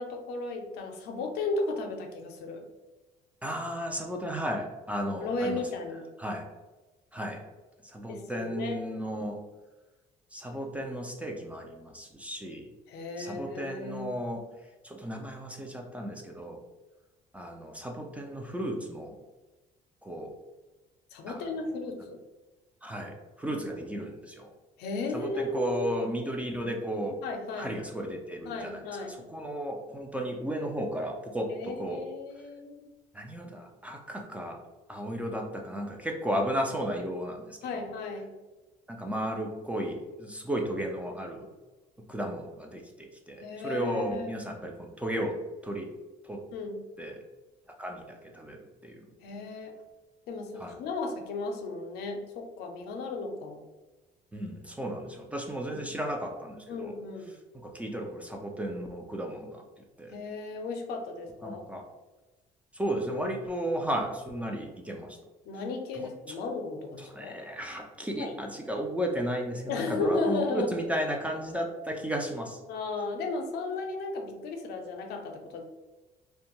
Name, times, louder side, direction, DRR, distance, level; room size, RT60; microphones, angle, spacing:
voice 1, 0.0-2.7 5.2-6.1 8.1-8.8 12.9-14.1 21.1-22.2 24.8-25.9 27.2-27.7 28.4-29.2 31.5-32.9 37.6-38.3 43.4-44.4 46.5-46.8 49.2-49.7 50.3-53.6 56.7-57.3 60.1-61.6 65.5-67.4 68.2-68.3 69.7-70.7 72.7-75.6, left 3 dB, 75° left, 3 dB, 0.5 m, -34 dB
voice 2, 3.4-5.6 6.2-6.4 7.1-7.4 7.8-9.4 10.3-12.7 13.2-14.5 14.8-16.6 17.3-19.2 20.0-20.3 21.3-21.5 22.8-24.5 25.1-27.2 27.5-32.1 33.1-34.6 34.9-37.9 38.9-41.5 42.1-45.9 46.2-46.4 47.0-47.2 47.8-49.1 50.6-50.8 54.3-57.0 57.5-60.1 61.4-61.9 62.7-65.2 65.9-66.4 67.0-72.6, equal, 10° right, 2 dB, 0.4 m, -34 dB
2.5 x 2.2 x 2.9 m, 1.1 s
cardioid pair, 110°, 17 cm